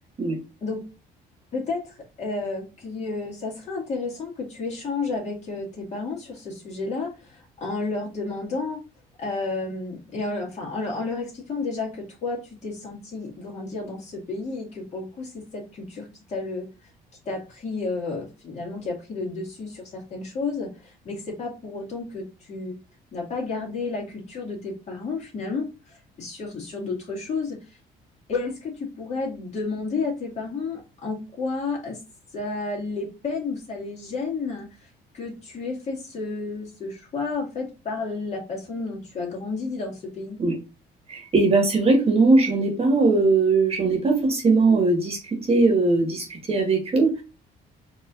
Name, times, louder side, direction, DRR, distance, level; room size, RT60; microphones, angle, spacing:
voice 1, 1.5-8.8 9.2-16.7 17.3-22.8 23.1-27.8 28.3-32.0 32.3-34.7 35.1-40.4, left 3 dB, 40° left, -2 dB, 2.1 m, -31 dB
voice 2, 41.1-47.2, right 3 dB, 35° right, 3 dB, 1.6 m, -20 dB
4.6 x 2.9 x 2.5 m, 0.30 s
cardioid pair, 110°, 17 cm